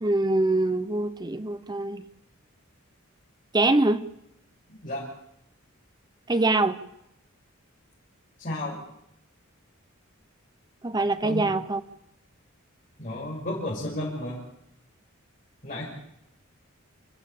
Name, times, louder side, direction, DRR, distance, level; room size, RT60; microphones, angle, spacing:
voice 1, 0.0-2.0 3.5-4.0 6.3-6.8 10.8-11.8, right 2 dB, 20° right, 12 dB, 0.8 m, -24 dB
voice 2, 8.4-8.8 11.2-11.4 13.0-14.4 15.6-15.8, left 1 dB, 40° left, -6 dB, 6.2 m, -32 dB
27.5 x 15.0 x 8.4 m, 0.81 s
head